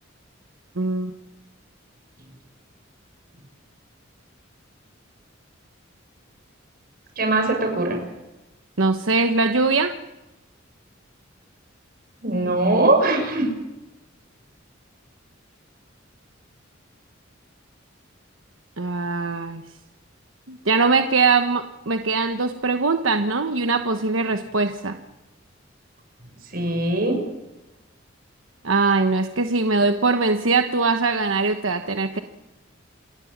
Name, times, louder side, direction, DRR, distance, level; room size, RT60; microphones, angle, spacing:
voice 1, 0.8-1.1 8.8-9.9 18.8-19.6 20.5-24.9 28.6-32.2, right 4 dB, 80° right, 6 dB, 1.2 m, -21 dB
voice 2, 7.2-8.0 12.2-13.5 26.5-27.2, right 2 dB, 50° right, 5 dB, 6.1 m, -21 dB
28.0 x 13.0 x 9.6 m, 1.0 s
head